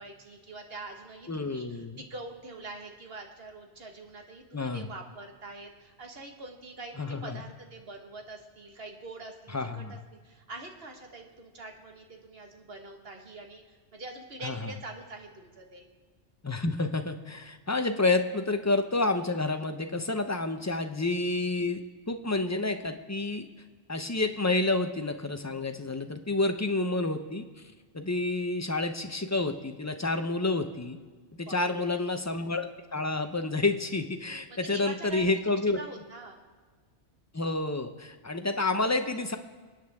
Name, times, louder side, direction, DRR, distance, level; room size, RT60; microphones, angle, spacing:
voice 1, 0.0-15.9 31.4-32.2 34.5-35.3 35.8-36.4, right 2 dB, 55° right, 3 dB, 1.8 m, -44 dB
voice 2, 1.3-2.0 4.5-4.9 7.0-7.4 9.5-10.0 14.4-14.6 16.4-23.5 23.9-27.5 27.9-31.0 31.4-35.8 37.3-39.4, left 2 dB, 20° left, 7 dB, 0.6 m, -29 dB
27.5 x 9.2 x 3.6 m, 1.5 s
omnidirectional pair, 1.2 m